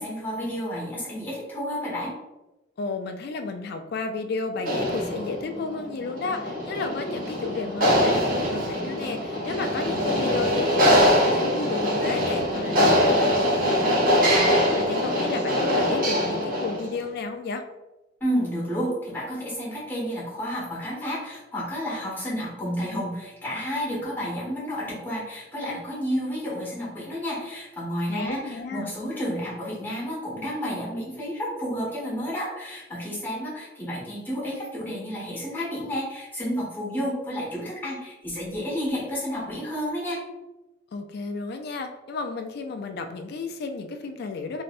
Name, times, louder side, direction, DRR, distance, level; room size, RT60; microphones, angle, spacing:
voice 1, 0.0-2.1 18.2-40.2, equal, 10° left, -7 dB, 1.5 m, -31 dB
voice 2, 2.8-17.6 28.1-28.9 40.9-44.6, left 4 dB, 55° left, 6 dB, 0.3 m, -33 dB
sound 1, 4.6-16.9, equal, 45° right, 1.0 m, -23 dB
3.2 x 2.7 x 2.5 m, 1.0 s
head